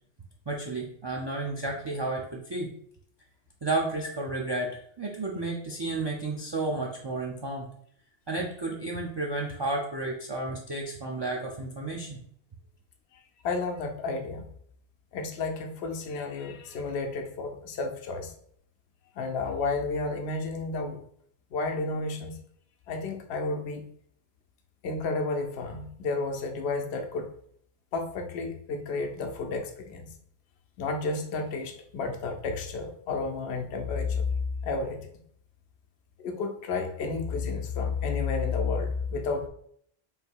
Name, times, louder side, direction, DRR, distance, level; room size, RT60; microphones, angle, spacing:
voice 1, 0.5-2.7 3.6-7.7 8.3-12.2, right 2 dB, 35° right, -2 dB, 0.4 m, -32 dB
voice 2, 13.4-14.5 15.1-18.3 19.2-21.0 21.5-22.4 22.9-23.8 24.8-27.3 27.9-30.1 30.8-34.3 34.6-35.1 36.2-39.5, left 4 dB, 80° left, 4 dB, 0.9 m, -31 dB
3.5 x 2.7 x 4.4 m, 0.65 s
omnidirectional pair, 1.1 m